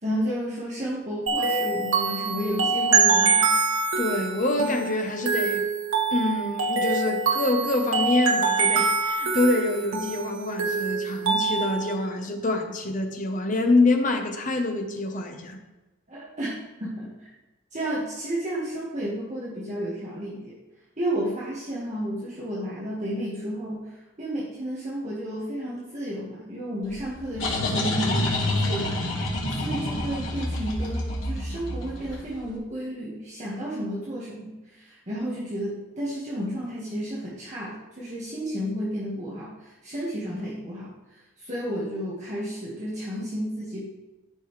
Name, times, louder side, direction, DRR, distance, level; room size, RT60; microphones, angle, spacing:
voice 1, 0.0-3.5 16.1-17.1 17.7-20.5 21.0-23.8 24.2-29.0 29.5-39.5 39.8-40.9 41.4-43.9, equal, 35° right, -7 dB, 1.6 m, -32 dB
sound 1, 1.3-11.9, right 4 dB, 90° right, 1.6 m, -24 dB
voice 2, 4.0-5.6 6.1-15.6, left 2 dB, 40° left, 4 dB, 1.0 m, -26 dB
sound 2, 26.9-32.4, left 1 dB, 80° left, 2.3 m, -28 dB
13.0 x 5.4 x 3.2 m, 1.1 s
head